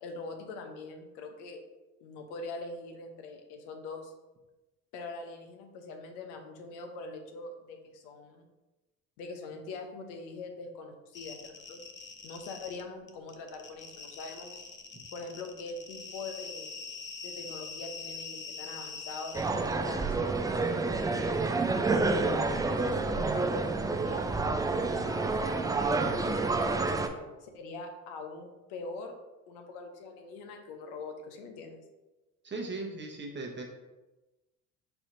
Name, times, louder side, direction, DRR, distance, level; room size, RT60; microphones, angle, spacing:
voice 1, 0.0-1.6 2.0-4.1 4.9-8.4 9.2-11.8 12.2-14.6 15.1-16.7 17.2-21.4 22.1-24.2 24.9-26.6 27.4-29.2 29.5-31.8, left 3 dB, 70° left, 4 dB, 0.8 m, -43 dB
sound 1, 11.1-12.8 13.1-19.7, left 4 dB, 30° left, 0.6 m, -44 dB
sound 2, 19.3-27.1, right 3 dB, 10° right, 0.3 m, -29 dB
voice 2, 32.4-33.6, right 3 dB, 30° right, 0 dB, 1.0 m, -38 dB
4.4 x 4.1 x 2.6 m, 1.1 s
hypercardioid pair, 60°, 40 cm